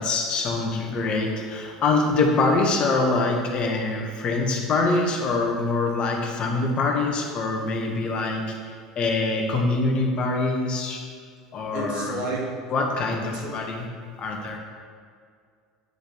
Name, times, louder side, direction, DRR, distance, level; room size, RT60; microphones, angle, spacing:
voice 1, 0.0-11.0 11.5-12.2 12.7-13.9 14.2-14.6, left 3 dB, 45° left, 1 dB, 1.7 m, -24 dB
voice 2, 11.7-12.5 13.3-13.6, right 2 dB, 60° right, -2 dB, 2.7 m, -31 dB
10.0 x 5.1 x 7.2 m, 2.1 s
hypercardioid pair, 80°, 2 cm